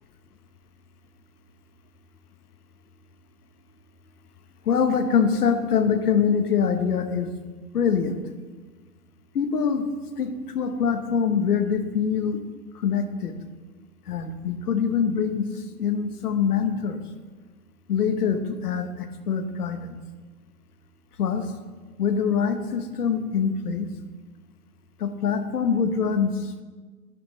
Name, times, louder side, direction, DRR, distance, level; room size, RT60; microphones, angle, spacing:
voice 1, 4.6-7.4 7.7-8.2 9.3-9.9 10.2-12.4 12.7-13.3 14.1-15.5 15.8-17.0 17.9-20.0 21.2-21.5 22.0-23.9 25.0-26.6, left 6 dB, 70° left, 9 dB, 1.2 m, -24 dB
11.5 x 9.6 x 3.2 m, 1.4 s
hypercardioid pair, 120°, 48 cm